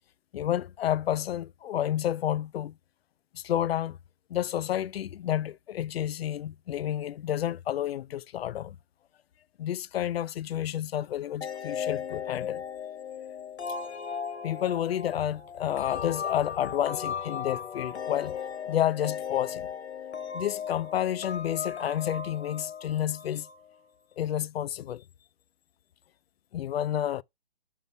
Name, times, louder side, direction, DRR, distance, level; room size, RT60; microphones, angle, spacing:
voice 1, 0.3-2.7 3.3-4.0 4.3-8.8 9.6-12.6 14.4-18.4 18.7-19.7 20.3-23.5 24.2-25.0 26.5-27.2, left 11 dB, 65° left, 0.5 m, -30 dB
sound 1, 11.4-23.8, left 7 dB, 90° left, 1.3 m, -37 dB
5.6 x 5.3 x 5.4 m
hypercardioid pair, 155°, 33 cm